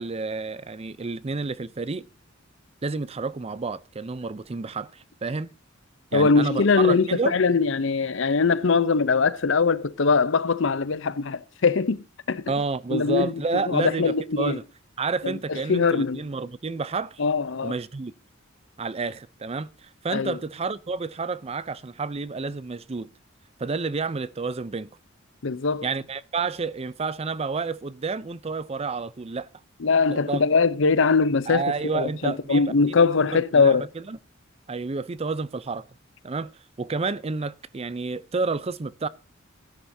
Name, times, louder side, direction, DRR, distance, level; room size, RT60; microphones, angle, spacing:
voice 1, 0.0-2.1 2.8-5.5 6.1-7.4 12.5-14.6 15.0-17.2 17.6-18.1 18.8-23.1 23.6-24.9 25.8-29.5 30.1-30.4 31.5-32.7 33.3-34.2 34.7-35.8 36.2-36.5 36.8-39.1, right 4 dB, 30° right, 0.5 m, -30 dB
voice 2, 6.1-12.4 12.9-14.6 15.2-16.2 17.2-17.7 20.1-20.4 25.4-25.9 29.8-31.6 31.9-33.9, left 4 dB, 65° left, 0.7 m, -22 dB
16.5 x 10.5 x 2.7 m
head